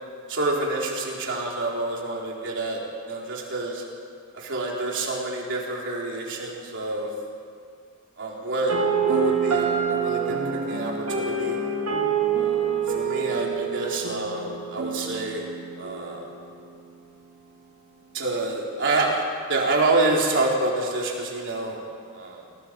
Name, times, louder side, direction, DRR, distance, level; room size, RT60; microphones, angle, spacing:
voice 1, 0.3-2.8 3.1-3.8 4.3-7.1 8.2-8.8 9.0-10.4 10.7-11.6 12.4-12.5 12.9-15.4 15.8-16.3 18.1-19.2 19.5-21.8 22.1-22.4, right 2 dB, 55° right, -2 dB, 4.0 m, -27 dB
sound 1, 8.7-16.7, right 6 dB, 80° right, 2.0 m, -27 dB
28.5 x 17.0 x 5.3 m, 2.2 s
head